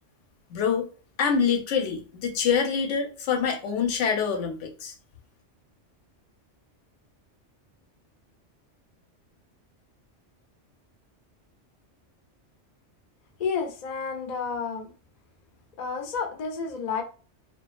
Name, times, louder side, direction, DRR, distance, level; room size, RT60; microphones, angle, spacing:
voice 1, 0.5-0.9 1.2-4.9, left 6 dB, 85° left, 0.9 m, -25 dB
voice 2, 13.4-14.9 15.8-17.0, left 5 dB, 55° left, 0.5 m, -30 dB
2.3 x 2.2 x 2.4 m
omnidirectional pair, 1.2 m